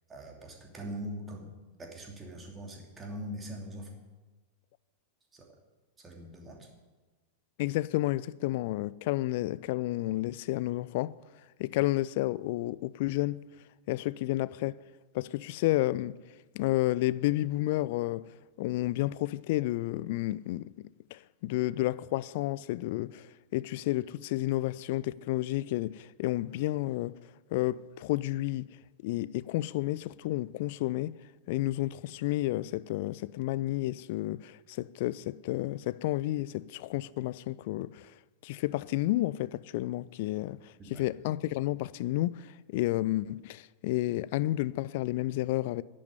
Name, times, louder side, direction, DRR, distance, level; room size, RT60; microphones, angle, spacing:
voice 1, 0.1-1.5 1.8-3.9 5.3-5.5 6.0-6.7 40.8-41.0, equal, 15° right, 2.8 m, -42 dB
voice 2, 7.6-11.2 11.6-13.4 13.9-14.8 15.1-16.2 16.5-18.3 18.6-20.7 21.1-23.3 23.5-27.1 27.5-28.7 29.0-31.1 31.5-38.0 38.4-42.5 42.7-45.8, left 17 dB, 50° left, 0.4 m, -31 dB
11.0 x 8.5 x 9.6 m
figure-of-eight pair, 90°, 0 cm